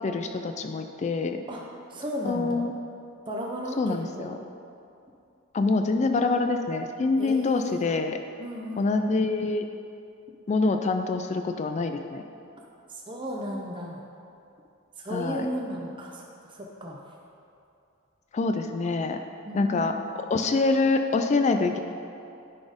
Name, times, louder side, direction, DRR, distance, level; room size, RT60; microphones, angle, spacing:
voice 1, 0.0-1.4 2.2-2.7 3.8-4.4 5.5-8.2 8.8-9.7 10.5-12.2 15.1-15.5 18.3-19.2 19.5-21.8, left 3 dB, 30° left, 6 dB, 0.3 m, -25 dB
voice 2, 1.9-2.7 3.3-4.4 7.2-7.8 8.4-9.1 12.9-14.0 15.0-17.0 19.5-20.0, equal, 20° right, -1 dB, 0.6 m, -35 dB
10.5 x 4.2 x 5.1 m, 2.6 s
head